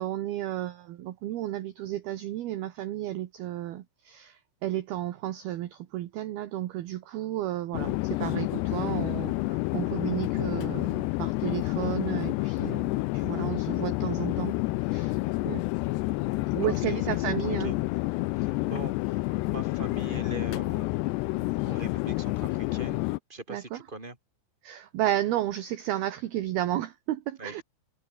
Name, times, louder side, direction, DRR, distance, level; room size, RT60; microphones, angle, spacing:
voice 1, 0.0-9.3 9.7-14.5 14.9-15.2 15.5-15.6 16.6-17.7 23.5-23.8 24.6-27.6, right 13 dB, 65° right, 2.7 m, -32 dB
Chatter / Fixed-wing aircraft airplane, 7.7-23.2, left 21 dB, 85° left, 2.4 m, -29 dB
voice 2, 16.6-17.8 18.3-20.9 21.6-23.0 23.3-24.2 27.4-27.6, right 2 dB, 10° right, 4.9 m, -41 dB
omnidirectional pair, 5.6 m